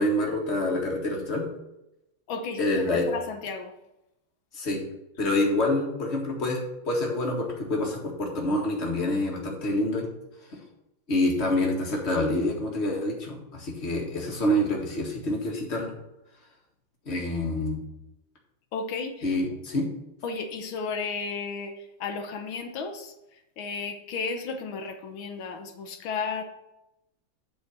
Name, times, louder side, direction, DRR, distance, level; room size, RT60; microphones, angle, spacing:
voice 1, 0.0-1.5 2.6-3.1 4.5-4.8 5.2-10.1 10.5-10.6 11.1-15.9 17.1-17.8 19.2-19.9, left 1 dB, 35° left, -1 dB, 1.9 m, -27 dB
voice 2, 2.3-2.6 3.0-3.7 18.7-19.3 20.2-23.1 23.6-26.4, left 4 dB, 80° left, 6 dB, 1.8 m, -33 dB
8.8 x 4.4 x 7.1 m, 0.89 s
omnidirectional pair, 2.2 m